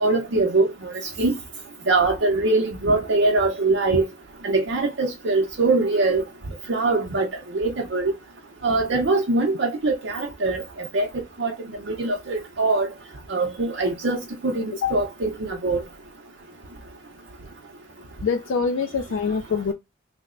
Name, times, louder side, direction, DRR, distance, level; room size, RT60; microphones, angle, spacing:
voice 1, 0.0-1.4 1.9-4.0 4.4-6.2 6.7-8.1 8.6-11.1 11.4-11.5 11.9-12.9 13.3-15.8, right 3 dB, 60° right, 0.6 m, -22 dB
voice 2, 18.2-19.7, left 5 dB, 65° left, 0.3 m, -24 dB
3.2 x 2.0 x 3.7 m
head